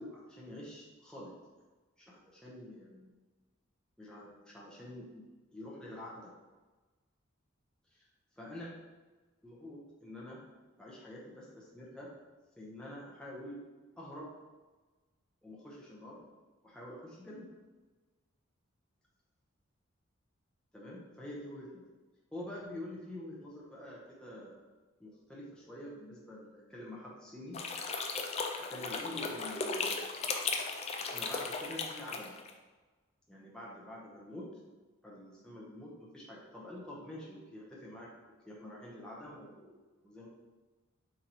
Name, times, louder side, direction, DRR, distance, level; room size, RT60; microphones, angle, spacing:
voice 1, 0.0-1.6 2.0-3.1 4.0-5.2 5.5-6.3 8.4-8.7 9.4-10.4 10.8-12.1 12.5-13.6 14.0-14.3 15.4-16.2 16.6-17.5 20.7-21.8 22.3-24.5 25.0-27.6 28.7-30.1 31.0-32.3 33.3-34.5 35.0-38.1 38.4-39.8 40.0-40.3, left 1 dB, 5° left, -6 dB, 0.7 m, -47 dB
sound 1, 27.5-32.5, left 4 dB, 30° left, 0.3 m, -36 dB
3.9 x 2.9 x 4.2 m, 1.3 s
head